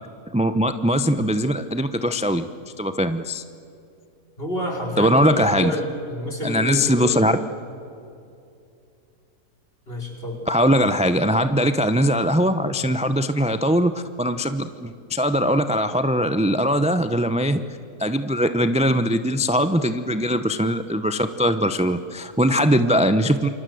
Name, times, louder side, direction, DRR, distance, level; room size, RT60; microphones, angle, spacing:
voice 1, 0.3-2.5 2.8-3.4 5.0-5.7 6.4-7.3 10.5-17.6 18.0-23.5, equal, 10° right, 10 dB, 0.4 m, -21 dB
voice 2, 4.4-7.3 9.9-10.4 22.8-23.0, equal, 35° left, 1 dB, 5.0 m, -29 dB
28.0 x 24.0 x 7.9 m, 2.6 s
omnidirectional pair, 1.6 m